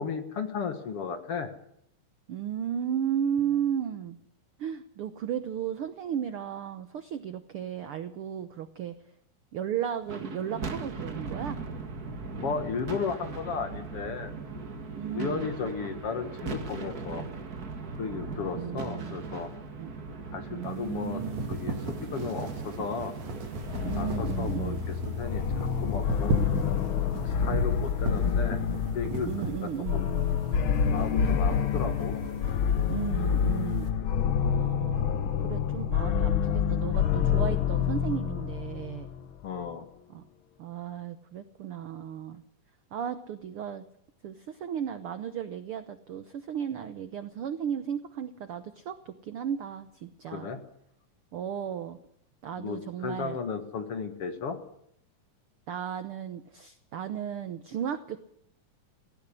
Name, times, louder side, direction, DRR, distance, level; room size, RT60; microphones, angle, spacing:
voice 1, 0.0-1.5 12.3-14.3 15.1-17.2 18.0-19.5 20.3-21.2 21.5-23.1 24.0-26.5 27.2-28.6 28.9-30.1 30.8-32.3 34.0-34.1 39.4-39.8 50.3-50.6 52.6-54.6, left 5 dB, 50° left, 8 dB, 2.2 m, -34 dB
voice 2, 2.3-4.2 4.6-8.9 9.5-11.6 14.9-15.5 18.5-19.2 19.8-19.9 20.5-21.6 23.8-24.8 29.2-30.0 32.9-33.9 34.4-39.1 40.1-40.2 40.6-42.4 42.9-43.8 44.2-50.5 51.3-52.0 52.4-53.4 55.7-58.3, right 9 dB, 85° right, 11 dB, 1.2 m, -34 dB
sound 1, 10.0-26.4, right 4 dB, 35° right, 1.7 m, -39 dB
sound 2, 20.6-33.9, right 2 dB, 55° right, 3.7 m, -37 dB
sound 3, 23.6-39.3, left 7 dB, 75° left, 1.2 m, -28 dB
18.0 x 16.5 x 9.9 m, 0.71 s
omnidirectional pair, 3.8 m